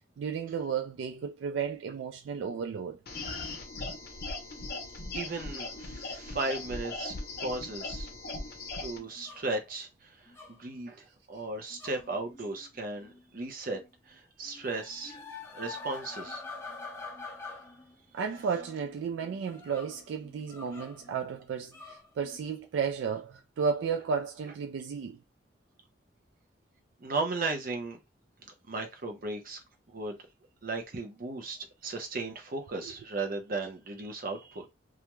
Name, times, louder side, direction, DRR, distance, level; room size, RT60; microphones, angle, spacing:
voice 1, 0.2-3.0 18.1-25.2, right 6 dB, 85° right, 0.3 m, -33 dB
sound 1, 3.1-9.0, left 3 dB, 55° left, 0.6 m, -39 dB
voice 2, 5.1-8.1 8.8-13.8 14.1-15.2 15.5-16.4 27.0-28.0 28.4-29.6 29.9-30.2 30.6-31.6 31.8-34.6, right 3 dB, 50° right, 0.7 m, -36 dB
sound 2, 8.9-9.5 10.3-10.6 11.7-13.3 13.7-13.9 14.4-22.4, left 3 dB, 15° left, 0.5 m, -46 dB
2.4 x 2.2 x 2.9 m
head